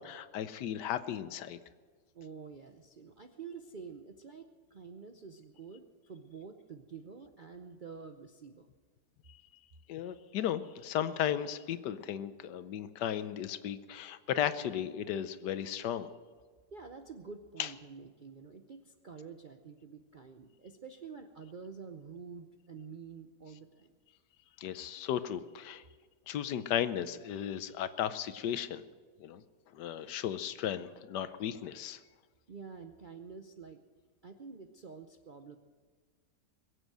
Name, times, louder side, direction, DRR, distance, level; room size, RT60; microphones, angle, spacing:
voice 1, 0.0-1.6 9.9-16.1 17.6-17.7 24.6-25.8 26.3-28.8 29.2-29.4 29.7-32.0, left 10 dB, 80° left, 13 dB, 1.3 m, -35 dB
voice 2, 2.1-8.7 16.7-23.9 32.5-33.8 34.2-35.6, right 5 dB, 55° right, 6 dB, 0.5 m, -48 dB
22.0 x 8.0 x 7.7 m, 1.5 s
omnidirectional pair, 1.8 m